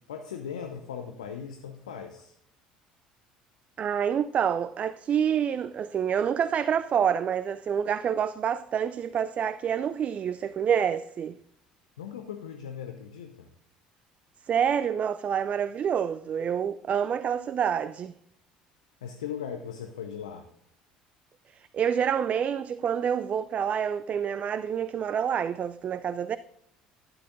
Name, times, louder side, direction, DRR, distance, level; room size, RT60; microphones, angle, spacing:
voice 1, 0.1-2.3 12.0-13.5 19.0-20.5, left 8 dB, 75° left, 0.7 m, -38 dB
voice 2, 3.8-11.4 14.5-18.2 21.5-26.4, right 8 dB, 40° right, 0.3 m, -27 dB
12.0 x 9.7 x 2.6 m
figure-of-eight pair, 60°, 4 cm